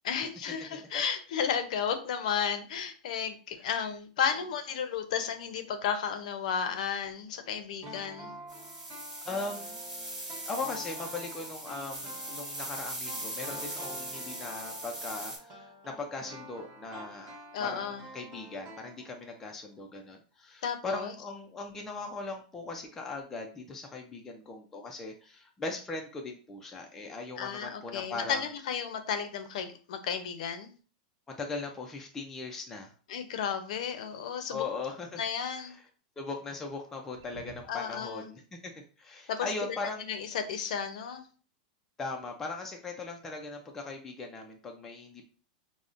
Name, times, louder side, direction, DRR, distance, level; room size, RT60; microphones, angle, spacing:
voice 1, 0.0-8.4 17.5-18.1 20.6-21.1 27.4-30.7 33.1-34.6 35.2-35.8 37.7-38.3 39.3-41.2, left 7 dB, 60° left, 8 dB, 0.5 m, -33 dB
voice 2, 0.7-1.0 9.3-9.8 10.5-28.4 31.3-32.9 34.5-35.2 35.6-35.7 36.2-38.7 39.0-40.1 42.0-45.3, left 3 dB, 10° left, 1 dB, 0.3 m, -39 dB
sound 1, 7.8-19.5 19.7-19.8, equal, 25° right, 0.8 m, -48 dB
sound 2, 8.5-15.4, right 1 dB, 10° right, 1.1 m, -40 dB
sound 3, 34.4-35.3 36.7-37.9, right 2 dB, 70° right, 0.8 m, -54 dB
5.1 x 2.0 x 2.4 m, 0.39 s
supercardioid pair, 170°, 4 cm